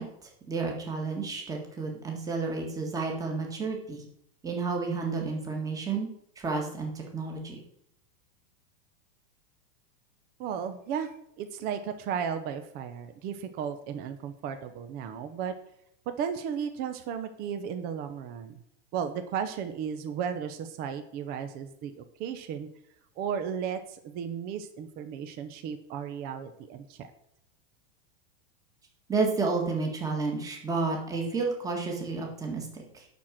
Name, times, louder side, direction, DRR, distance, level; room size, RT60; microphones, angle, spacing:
voice 1, 0.0-4.1 4.4-6.1 6.4-7.6 29.1-33.1, right 4 dB, 10° right, 1 dB, 1.8 m, -31 dB
voice 2, 10.4-15.5 16.2-18.6 18.9-21.9 22.2-22.7 23.2-27.1, right 7 dB, 30° right, 8 dB, 0.9 m, -34 dB
11.5 x 4.5 x 7.5 m, 0.74 s
supercardioid pair, 165°, 32 cm